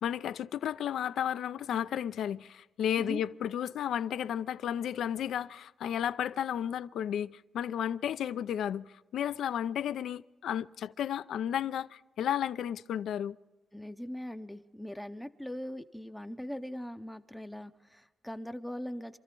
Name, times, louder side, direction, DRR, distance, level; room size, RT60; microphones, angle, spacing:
voice 1, 0.0-13.4, left 9 dB, 80° left, 0.4 m, -33 dB
voice 2, 13.7-19.2, equal, 5° left, 0.5 m, -40 dB
27.0 x 14.0 x 3.8 m
cardioid pair, 130°, 0 cm